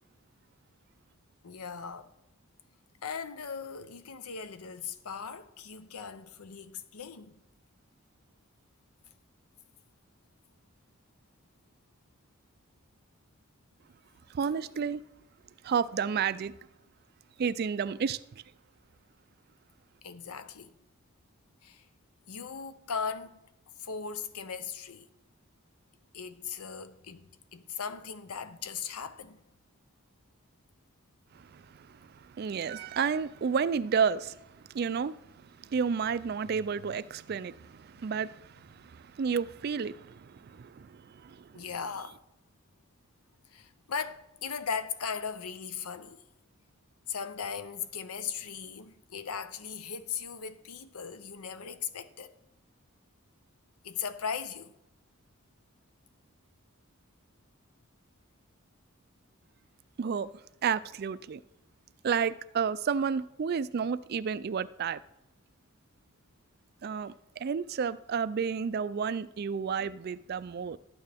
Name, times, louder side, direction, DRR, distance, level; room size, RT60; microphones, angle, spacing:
voice 1, 1.4-2.1 3.0-7.4 20.0-20.7 21.6-21.9 22.3-23.4 23.8-25.1 26.1-29.4 36.5-36.7 37.3-37.4 41.5-42.2 43.5-46.2 47.1-52.3 53.8-54.7, left 6 dB, 85° left, 0.7 m, -38 dB
voice 2, 14.3-15.0 15.6-16.5 17.4-18.2 31.3-34.4 34.7-35.2 35.6-41.6 60.0-60.3 60.6-61.4 62.0-65.0 66.8-70.8, right 6 dB, 45° right, 0.3 m, -31 dB
12.5 x 8.9 x 3.5 m
head